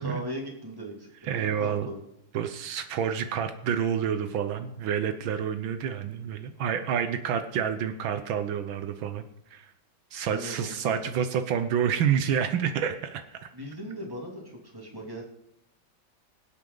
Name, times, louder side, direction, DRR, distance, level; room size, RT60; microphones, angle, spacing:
voice 1, 0.0-2.0 10.2-11.1 13.5-15.2, equal, 10° right, -1 dB, 2.5 m, -38 dB
voice 2, 1.2-1.9 2.3-9.2 9.5-9.7 10.1-13.5, right 8 dB, 80° right, 9 dB, 1.6 m, -28 dB
24.0 x 8.3 x 3.9 m, 0.80 s
omnidirectional pair, 2.1 m